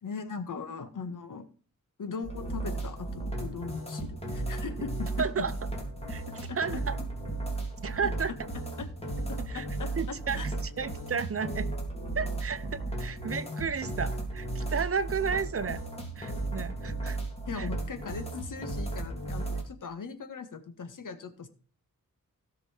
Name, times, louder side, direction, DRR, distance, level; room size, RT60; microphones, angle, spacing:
voice 1, 0.0-1.5 2.0-5.5 6.3-6.6 8.8-8.9 9.3-10.5 17.5-21.5, left 5 dB, 70° left, 9 dB, 1.8 m, -39 dB
sound 1, 2.2-19.6, right 2 dB, 20° left, 3.2 m, -35 dB
voice 2, 5.2-5.5 6.1-6.2 6.6-7.0 7.8-8.3 9.4-9.6 10.0-11.7 12.2-15.8 16.2-17.2 17.6-17.7, right 6 dB, 45° right, 13 dB, 0.8 m, -32 dB
17.0 x 6.1 x 4.4 m, 0.39 s
wide cardioid pair, 150°, 33 cm